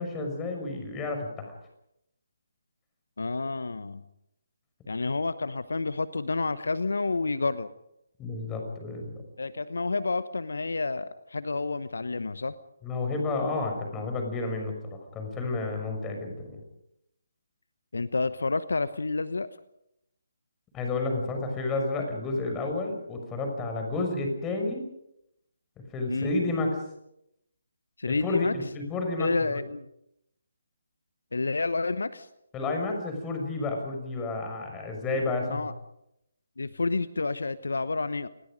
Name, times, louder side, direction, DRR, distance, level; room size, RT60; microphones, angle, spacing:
voice 1, 0.0-1.5 8.2-9.1 12.8-16.6 20.7-24.8 25.9-26.8 28.1-29.6 32.5-35.7, left 3 dB, 15° left, 3 dB, 6.2 m, -31 dB
voice 2, 3.2-4.0 4.9-7.7 9.4-12.6 17.9-19.5 26.1-26.3 28.0-28.6 29.2-29.9 31.3-32.3 35.3-35.7 36.6-38.3, left 3 dB, 70° left, 14 dB, 1.0 m, -29 dB
29.0 x 20.5 x 5.2 m, 0.81 s
figure-of-eight pair, 145°, 0 cm